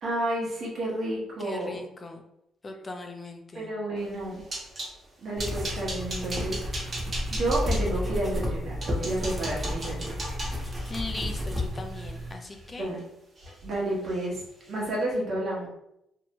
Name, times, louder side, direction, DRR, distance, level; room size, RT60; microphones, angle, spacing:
voice 1, 0.0-1.8 3.5-4.4 5.2-6.6 7.3-10.1 12.8-13.0 13.6-14.4 14.7-15.7, right 1 dB, 60° right, -4 dB, 1.0 m, -30 dB
voice 2, 1.4-2.2 2.6-3.7 10.9-12.9, left 3 dB, 30° left, 3 dB, 0.4 m, -38 dB
sound 1, 4.1-4.9 5.4-7.8 8.4-8.5 8.8-13.0 13.4-13.8 14.0-14.3 14.7-14.8, right 1 dB, 35° right, 1.1 m, -38 dB
sound 2, 5.4-12.3, left 1 dB, 20° right, 0.8 m, -32 dB
2.7 x 2.1 x 2.8 m, 0.82 s
cardioid pair, 90°, 0 cm